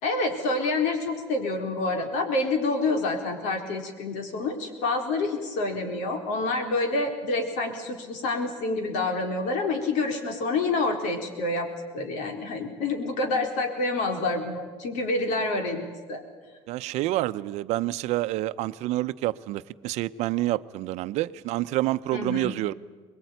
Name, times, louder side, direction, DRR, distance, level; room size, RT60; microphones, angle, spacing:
voice 1, 0.0-11.7 11.9-16.2 22.1-22.6, left 3 dB, 90° left, 4.0 m, -27 dB
voice 2, 16.7-22.7, right 16 dB, 65° right, 0.7 m, -28 dB
23.5 x 21.5 x 9.3 m
cardioid pair, 175°, 12 cm